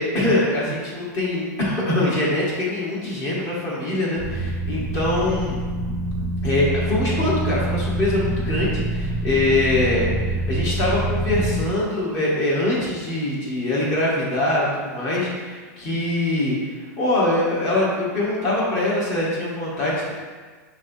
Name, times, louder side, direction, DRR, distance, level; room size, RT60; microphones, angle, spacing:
voice 1, 0.0-5.6 6.4-10.1 10.5-20.1, left 1 dB, 35° left, -6 dB, 1.2 m, -23 dB
sound 1, 4.2-11.6, right 2 dB, 15° left, 1.2 m, -26 dB
5.9 x 3.2 x 2.7 m, 1.4 s
supercardioid pair, 145°, 9 cm